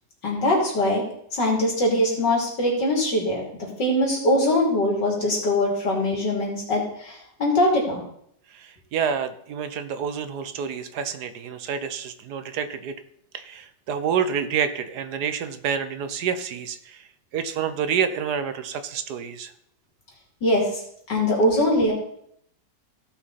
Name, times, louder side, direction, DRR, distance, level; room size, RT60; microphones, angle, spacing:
voice 1, 0.2-1.0 1.3-3.4 3.8-8.0 20.4-20.8 21.1-21.9, left 1 dB, 80° left, -1 dB, 3.7 m, -22 dB
voice 2, 8.5-13.0 13.3-17.1 17.3-19.5, right 7 dB, 70° right, 11 dB, 1.3 m, -28 dB
16.5 x 5.9 x 4.2 m, 0.71 s
omnidirectional pair, 1.9 m